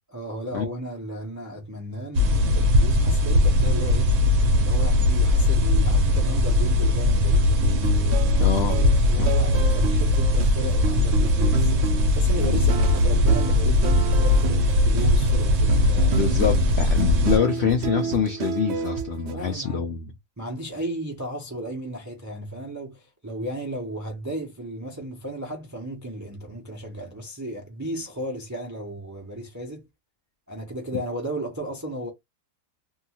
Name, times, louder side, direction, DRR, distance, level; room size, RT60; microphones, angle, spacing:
voice 1, 0.1-4.1 4.6-7.6 9.0-16.4 17.2-17.8 19.2-19.8 20.4-29.8 30.5-32.1, right 1 dB, 30° right, 0.3 m, -34 dB
sound 1, 2.1-17.4, left 1 dB, 60° right, 1.0 m, -20 dB
sound 2, 7.6-19.3, right 6 dB, 85° right, 0.5 m, -30 dB
voice 2, 8.4-8.8 9.2-9.3 16.1-20.1, left 7 dB, 80° left, 0.6 m, -25 dB
2.7 x 2.3 x 2.8 m
omnidirectional pair, 1.7 m